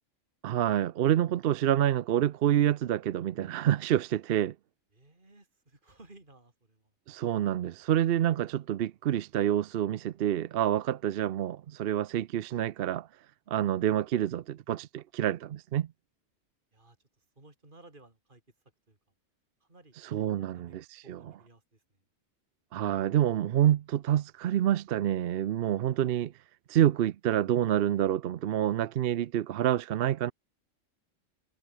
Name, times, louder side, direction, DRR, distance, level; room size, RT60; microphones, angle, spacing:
voice 1, 0.4-4.5 7.1-13.1 13.5-15.9 20.0-21.4 22.7-26.3 26.7-30.3, right 11 dB, 60° right, 0.7 m, -27 dB
voice 2, 4.9-6.8 16.7-17.0 17.4-18.4 18.9-19.0 19.6-21.8, right 2 dB, 40° right, 4.3 m, -57 dB
omnidirectional pair, 1.3 m